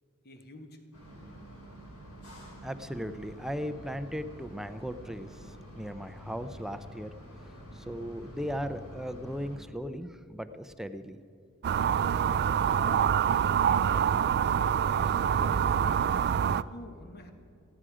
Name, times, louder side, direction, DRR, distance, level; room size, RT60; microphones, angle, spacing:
voice 1, 0.2-0.8 12.7-13.3 13.8-14.5 14.9-16.3 16.7-17.3, left 2 dB, 45° left, 5 dB, 1.7 m, -47 dB
sound 1, 0.9-9.6, equal, 80° left, 4.7 m, -47 dB
voice 2, 2.6-5.3 5.8-7.1 7.9-11.2, equal, ahead, 10 dB, 0.6 m, -37 dB
sound 2, 11.6-16.6, right 8 dB, 45° right, 0.4 m, -26 dB
18.0 x 15.5 x 5.0 m, 2.7 s
head